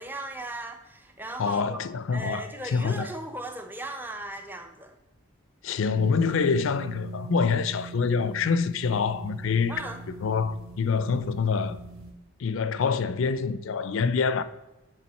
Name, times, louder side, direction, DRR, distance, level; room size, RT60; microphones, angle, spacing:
voice 1, 0.0-1.8 2.1-4.9 9.7-10.0, right 2 dB, 10° right, 0.6 m, -37 dB
voice 2, 1.4-3.1 5.6-9.8 10.2-11.8 12.4-14.4, left 5 dB, 65° left, 0.4 m, -26 dB
sound 1, 5.9-12.1, right 3 dB, 80° right, 2.7 m, -43 dB
7.4 x 5.0 x 4.1 m
head